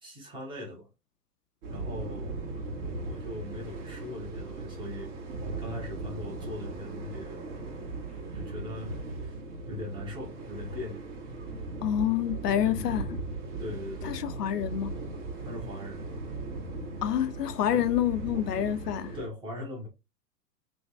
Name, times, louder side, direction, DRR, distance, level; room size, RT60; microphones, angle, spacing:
voice 1, 0.0-0.9 1.7-2.3 3.0-5.1 5.6-7.8 8.3-8.9 9.2-9.4 9.7-11.1 12.7-13.0 13.6-14.2 15.4-16.1 17.7-17.9 18.3-18.7 19.1-19.9, left 1 dB, 10° right, 0.7 m, -40 dB
sound 1, 1.6-19.3, right 2 dB, 50° right, 1.3 m, -38 dB
voice 2, 11.8-13.1 14.0-14.9 17.0-19.2, left 10 dB, 75° left, 0.5 m, -28 dB
3.2 x 2.2 x 2.6 m
hypercardioid pair, 120°, 48 cm